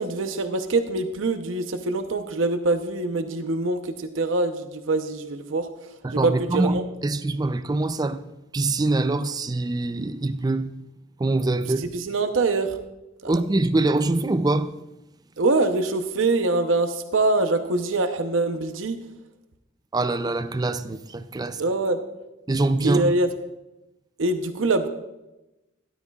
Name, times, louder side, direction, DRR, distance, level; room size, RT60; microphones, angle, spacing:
voice 1, 0.0-5.7 6.2-6.8 11.8-12.7 13.2-13.4 15.4-19.0 21.6-22.0 22.8-23.3 24.2-24.9, right 2 dB, 80° right, 0.8 m, -24 dB
voice 2, 6.0-6.7 7.0-8.2 8.5-10.7 11.2-11.9 13.3-14.7 19.9-21.6 22.5-23.1, right 2 dB, 20° right, 0.4 m, -24 dB
13.0 x 12.5 x 2.4 m
head